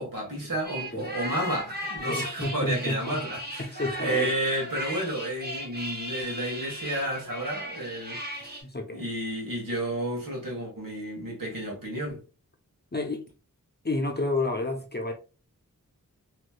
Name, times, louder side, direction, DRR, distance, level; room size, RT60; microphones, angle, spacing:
voice 1, 0.0-8.6 8.9-12.2, right 1 dB, 70° right, 1.6 m, -31 dB
sound 1, 0.6-8.6, equal, 25° right, 1.2 m, -37 dB
voice 2, 2.0-3.2 3.6-4.3 8.6-9.0 12.9-13.2 13.8-15.1, left 2 dB, 30° left, 0.7 m, -30 dB
3.1 x 3.0 x 2.3 m
wide cardioid pair, 45°, 35 cm